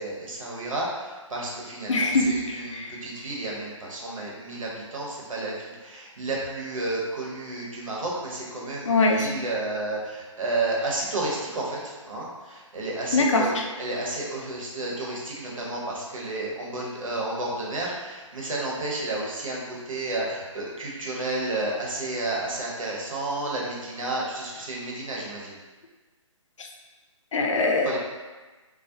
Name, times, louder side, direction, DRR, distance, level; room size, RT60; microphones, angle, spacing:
voice 1, 0.0-25.6 27.8-28.0, right 2 dB, 80° right, -4 dB, 0.8 m, -31 dB
voice 2, 1.9-2.9 8.9-9.3 13.1-13.6 27.3-27.9, left 2 dB, 70° left, 1 dB, 0.4 m, -22 dB
2.3 x 2.0 x 2.7 m, 1.3 s
hypercardioid pair, 150°, 17 cm